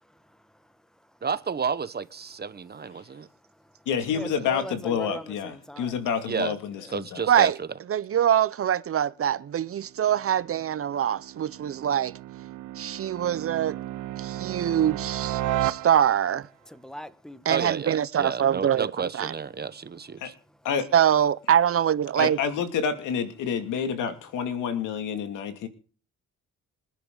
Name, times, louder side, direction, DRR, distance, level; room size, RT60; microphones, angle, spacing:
voice 1, 0.0-1.3 2.5-3.0 4.1-6.0 6.6-7.0 16.6-17.7 19.6-20.7, equal, ahead, 1.4 m, -43 dB
voice 2, 1.2-3.0 6.3-6.5 6.9-7.7 17.5-20.3, right 6 dB, 35° right, 1.2 m, -31 dB
voice 3, 3.9-7.3 20.2-20.3 20.6-20.9 22.2-25.7, left 7 dB, 90° left, 2.5 m, -29 dB
voice 4, 7.9-12.1 12.8-13.7 14.2-16.4 17.5-18.9 19.1-19.3 20.9-22.4, right 9 dB, 50° right, 0.7 m, -24 dB
sound 1, 10.0-16.5, right 14 dB, 80° right, 0.9 m, -34 dB
26.0 x 10.5 x 3.9 m
cardioid pair, 90°, 30 cm